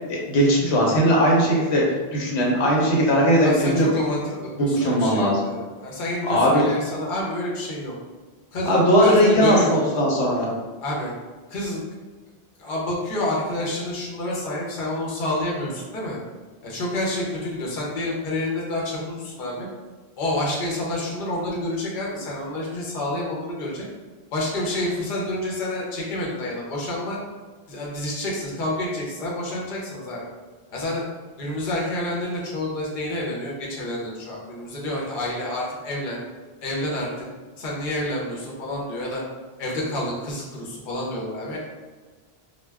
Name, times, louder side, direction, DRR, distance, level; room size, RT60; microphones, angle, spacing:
voice 1, 0.1-1.8 2.1-3.9 4.6-5.4 6.2-6.6 8.7-10.5, equal, 85° left, -3 dB, 1.0 m, -19 dB
voice 2, 3.4-4.2 4.6-7.9 8.5-9.7 10.8-11.1 11.5-11.8 12.6-16.2 16.6-19.7 20.2-23.8 24.3-27.2 27.7-30.3 30.7-31.0 31.4-36.2 36.6-37.3 37.6-39.2 39.6-41.6, left 1 dB, 55° left, -3 dB, 0.8 m, -28 dB
2.2 x 2.2 x 3.3 m, 1.4 s
omnidirectional pair, 1.1 m